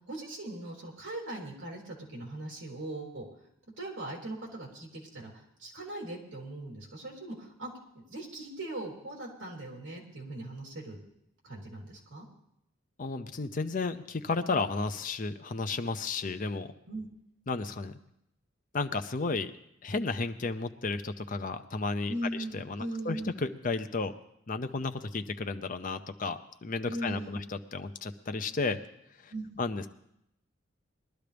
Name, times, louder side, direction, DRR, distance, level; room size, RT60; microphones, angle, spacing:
voice 1, 0.1-3.3 3.8-11.0 11.4-12.3 16.9-17.1 22.1-23.3 26.9-27.4 29.3-29.5, right 1 dB, 65° right, -2 dB, 3.4 m, -39 dB
voice 2, 13.0-16.7 17.5-18.0 18.7-19.5 19.8-22.1 22.5-24.2 24.5-28.8 29.2-29.3 29.6-29.9, left 3 dB, 40° left, 9 dB, 0.6 m, -33 dB
21.0 x 12.0 x 3.4 m, 0.79 s
head